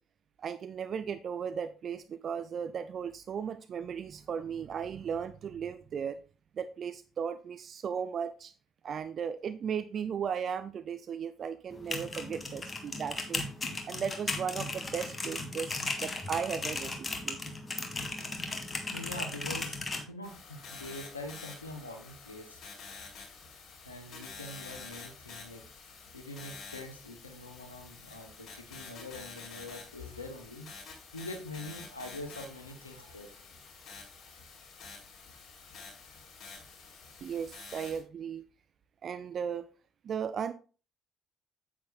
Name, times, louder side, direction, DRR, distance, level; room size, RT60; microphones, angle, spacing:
voice 1, 0.4-6.2 6.6-8.5 8.8-13.5 13.8-17.4 37.2-38.4 39.0-39.7 40.0-40.5, right 7 dB, 45° right, 13 dB, 0.5 m, -36 dB
sound 1, 11.7-20.0, left 3 dB, 25° left, 2.1 m, -36 dB
voice 2, 18.3-22.6 23.8-25.7 26.1-30.7 31.1-33.3, left 1 dB, 85° left, 5 dB, 1.2 m, -44 dB
sound 2, 20.2-38.0, left 4 dB, 45° left, 4.8 m, -49 dB
9.4 x 8.6 x 2.5 m, 0.35 s
figure-of-eight pair, 50°, 0 cm